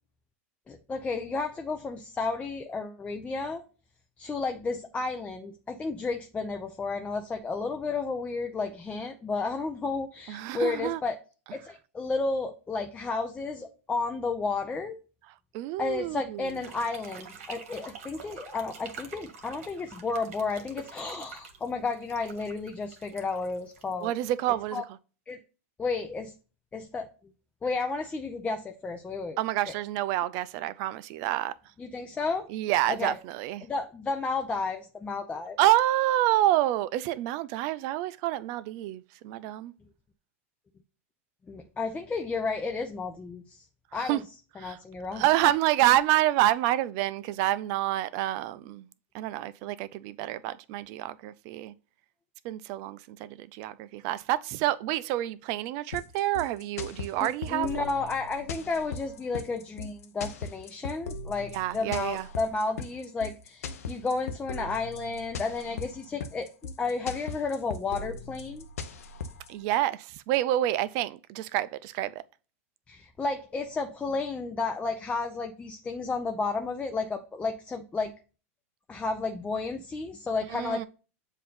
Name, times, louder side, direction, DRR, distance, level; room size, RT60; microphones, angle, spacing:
voice 1, 0.7-3.6 4.2-11.2 11.5-15.0 15.8-24.1 24.7-24.8 25.3-25.4 25.8-26.3 26.7-27.1 27.6-29.4 29.7-29.8 31.8-32.5 32.9-33.2 33.6-35.6 41.5-43.7 43.9-44.2 44.6-45.5 57.2-66.5 66.8-68.6 72.9-78.1 78.9-80.9, left 4 dB, 15° left, 0.6 m, -32 dB
voice 2, 10.3-11.0 15.5-16.5 24.0-24.8 29.4-31.5 32.5-33.7 35.6-39.7 44.1-44.2 44.6-44.8 45.1-48.8 49.1-51.7 52.4-57.8 61.5-62.3 69.5-72.1 80.5-80.9, right 14 dB, 50° right, 0.4 m, -28 dB
sound 1, 16.4-24.4, right 6 dB, 70° right, 1.3 m, -47 dB
sound 2, 55.9-69.5, left 4 dB, 85° left, 0.7 m, -38 dB
7.5 x 2.7 x 5.5 m
hypercardioid pair, 110°, 8 cm